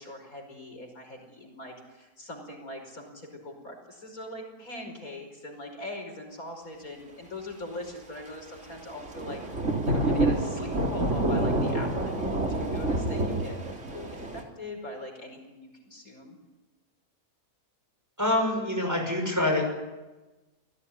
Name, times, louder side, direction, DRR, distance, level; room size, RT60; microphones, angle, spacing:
voice 1, 0.0-9.5 9.9-16.4, left 1 dB, 60° left, 3 dB, 5.6 m, -41 dB
Thunder / Rain, 8.9-14.4, right 1 dB, 45° right, 3.8 m, -28 dB
voice 2, 18.2-19.6, left 1 dB, 10° right, 2 dB, 6.1 m, -25 dB
29.0 x 17.5 x 9.9 m, 1.1 s
omnidirectional pair, 1.7 m